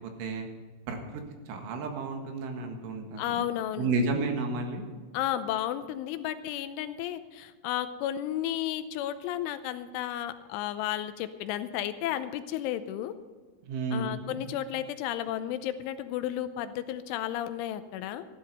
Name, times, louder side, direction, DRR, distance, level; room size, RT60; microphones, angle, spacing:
voice 1, 0.9-1.2 1.5-3.4 3.8-4.8 13.6-14.5, right 3 dB, 80° right, 4 dB, 4.1 m, -32 dB
voice 2, 3.2-3.9 5.1-13.1 13.9-18.3, left 11 dB, 90° left, 11 dB, 3.2 m, -33 dB
14.5 x 12.0 x 5.5 m, 1.5 s
omnidirectional pair, 5.5 m